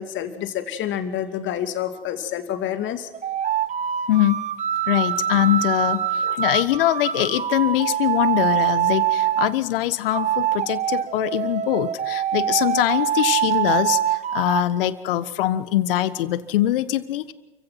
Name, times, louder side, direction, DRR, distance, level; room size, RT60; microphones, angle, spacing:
voice 1, 0.0-3.1 6.2-6.4, left 10 dB, 40° left, 8 dB, 2.5 m, -28 dB
sound 1, 3.1-9.5 10.1-14.6, right 10 dB, 25° right, 1.2 m, -24 dB
voice 2, 4.1-4.4 4.9-17.3, left 14 dB, 65° left, 15 dB, 1.4 m, -23 dB
29.5 x 16.0 x 5.9 m, 1.2 s
hypercardioid pair, 90°, 30 cm